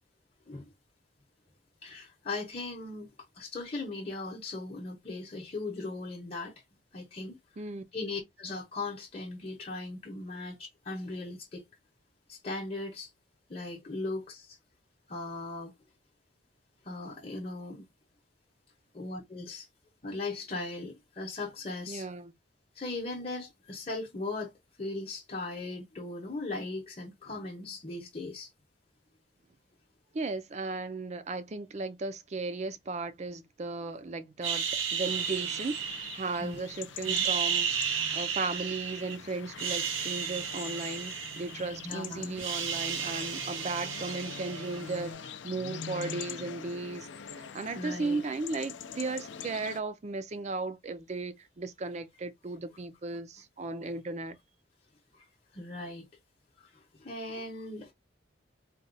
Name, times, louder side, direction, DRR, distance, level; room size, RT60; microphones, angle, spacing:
voice 1, 1.8-6.5 6.9-7.4 7.9-11.6 12.3-13.1 13.5-14.6 15.1-15.7 16.8-17.8 18.9-19.7 20.0-22.1 22.7-24.5 24.8-28.5 36.4-36.6 37.1-37.3 41.8-42.3 47.7-48.2 55.1-55.2 55.5-56.1 56.6-56.7 57.0-57.9, left 2 dB, 30° left, 0.8 m, -38 dB
voice 2, 21.9-22.3 30.1-37.7 38.1-47.1 47.5-54.4, right 3 dB, 35° right, 0.4 m, -36 dB
sound 1, 34.4-36.6 37.0-39.2 39.5-41.9 42.2-45.0, right 7 dB, 90° right, 1.0 m, -33 dB
sound 2, 35.0-49.8, left 7 dB, 70° left, 0.4 m, -44 dB
4.1 x 2.2 x 2.6 m
head